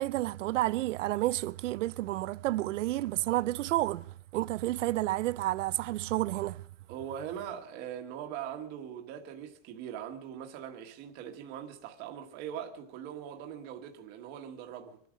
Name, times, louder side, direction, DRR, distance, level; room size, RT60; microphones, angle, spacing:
voice 1, 0.0-6.6, right 16 dB, 80° right, 0.6 m, -30 dB
voice 2, 6.9-15.0, right 9 dB, 25° right, 1.4 m, -41 dB
25.0 x 9.1 x 6.2 m
supercardioid pair, 175°, 36 cm